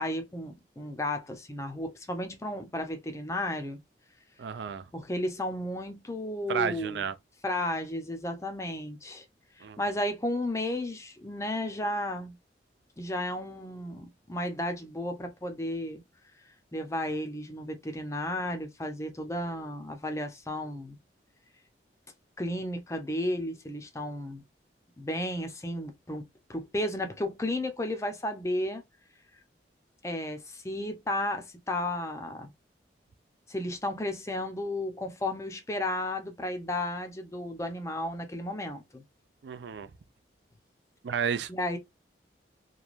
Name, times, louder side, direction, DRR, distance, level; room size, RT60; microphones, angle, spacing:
voice 1, 0.0-3.8 4.9-7.0 7.4-9.2 9.6-12.4 13.0-16.0 16.7-21.0 22.4-24.4 25.0-26.2 26.5-28.8 30.0-32.5 33.5-39.0 41.5-41.8, left 1 dB, 15° left, 0.5 m, -33 dB
voice 2, 4.4-4.8 6.5-7.1 9.6-9.8 39.4-39.9 41.0-41.5, right 7 dB, 75° right, 0.4 m, -32 dB
3.1 x 2.2 x 2.4 m
head